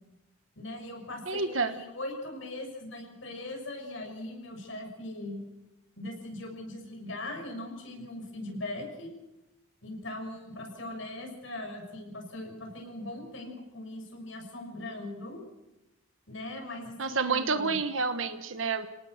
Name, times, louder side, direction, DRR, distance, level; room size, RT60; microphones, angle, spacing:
voice 1, 0.5-5.4 6.0-9.1 9.8-15.4 16.3-17.8, left 1 dB, 65° left, 2 dB, 6.6 m, -40 dB
voice 2, 1.3-1.7 17.0-18.9, right 4 dB, 70° right, 10 dB, 1.3 m, -29 dB
29.0 x 19.0 x 6.7 m, 0.99 s
head